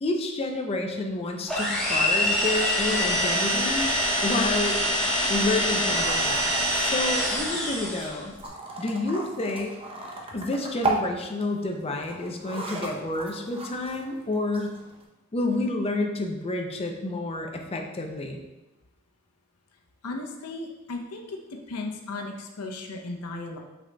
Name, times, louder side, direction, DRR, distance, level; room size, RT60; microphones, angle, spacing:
voice 1, 0.0-3.8 4.2-4.8 5.3-8.3 8.8-9.7 10.3-14.8 15.3-18.4, left 2 dB, 25° left, 3 dB, 0.4 m, -29 dB
sound 1, 1.5-8.2, equal, 5° left, 1.1 m, -25 dB
sound 2, 3.4-15.0, right 2 dB, 25° right, 0.6 m, -37 dB
voice 2, 20.0-21.4 21.7-23.6, left 3 dB, 90° left, 2 dB, 0.7 m, -35 dB
5.9 x 3.9 x 2.2 m, 1.1 s
head